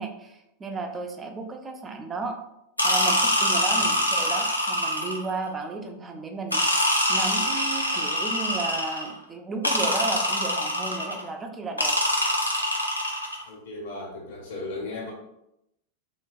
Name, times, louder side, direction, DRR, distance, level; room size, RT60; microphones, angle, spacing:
voice 1, 0.0-2.4 2.8-11.9, right 3 dB, 20° right, 4 dB, 0.4 m, -34 dB
sound 1, 2.8-5.3 6.5-9.1 9.6-11.2 11.8-13.4, equal, 85° left, 0.5 m, -24 dB
voice 2, 13.5-15.1, left 2 dB, 60° left, -3 dB, 1.2 m, -36 dB
3.2 x 2.9 x 2.4 m, 0.84 s
figure-of-eight pair, 90°, 0 cm